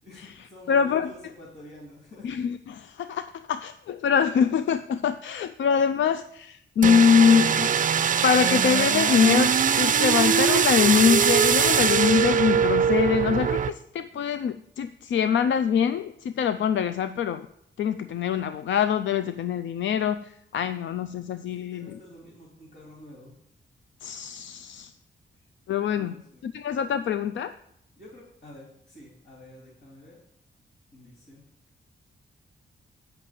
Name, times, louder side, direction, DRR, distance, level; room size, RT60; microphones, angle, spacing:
voice 1, 0.0-2.3 2.7-2.8 21.5-23.3 25.9-26.5 28.0-30.2 30.9-31.4, left 1 dB, 60° left, -5 dB, 3.0 m, -48 dB
voice 2, 0.7-1.1 2.2-7.7 8.2-17.5 17.8-21.9 24.0-24.9 25.7-26.2 26.4-27.5, left 7 dB, 75° left, 11 dB, 0.4 m, -24 dB
sound 1, 6.8-13.7, right 7 dB, 45° right, 0.4 m, -22 dB
7.8 x 5.8 x 7.4 m, 0.75 s
wide cardioid pair, 115°, 20 cm